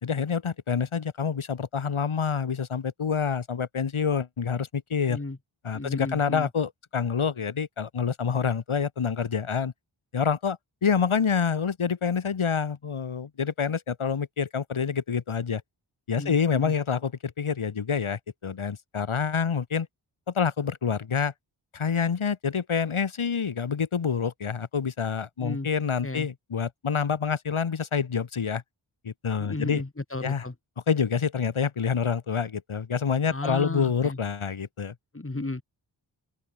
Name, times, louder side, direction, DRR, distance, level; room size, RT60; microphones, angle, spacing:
voice 1, 0.0-5.2 5.6-9.7 10.1-15.6 16.1-19.9 20.3-21.3 21.7-28.6 29.0-29.8 30.2-30.5 30.9-34.9, left 6 dB, 85° left, 4.8 m, -27 dB
voice 2, 5.7-6.5 16.2-16.7 25.4-25.7 26.0-26.3 29.4-30.5 33.3-34.2 35.1-35.6, left 2 dB, 25° left, 7.4 m, -34 dB
open air
wide cardioid pair, 70°, 48 cm